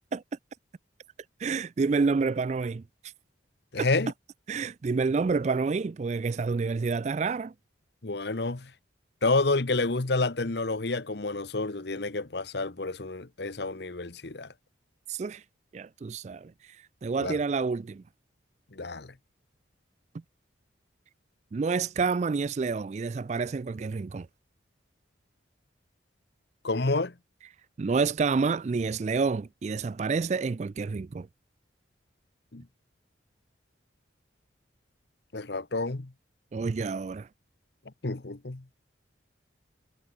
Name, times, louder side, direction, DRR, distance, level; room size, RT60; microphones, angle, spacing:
voice 1, 1.4-2.8 4.5-7.5 15.1-15.4 15.7-16.5 17.0-18.0 21.5-24.3 27.8-31.3 36.5-37.3, right 4 dB, 35° right, 0.3 m, -28 dB
voice 2, 3.7-4.1 8.0-8.7 9.2-14.5 17.2-17.4 18.7-19.1 26.6-27.1 32.5-32.6 35.3-36.1 38.0-38.6, left 3 dB, 60° left, 1.0 m, -29 dB
head